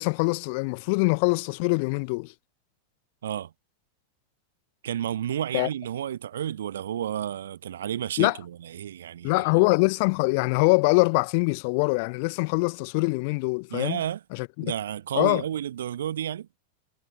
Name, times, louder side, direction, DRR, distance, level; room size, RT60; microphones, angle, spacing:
voice 1, 0.0-2.3 5.5-5.7 8.2-8.4 9.2-14.0 14.3-14.7 15.1-15.4, left 30 dB, 45° left, 1.2 m, -23 dB
voice 2, 3.2-3.5 4.8-9.6 13.7-14.2 14.6-16.5, right 10 dB, 60° right, 1.0 m, -31 dB
figure-of-eight pair, 90°, 0 cm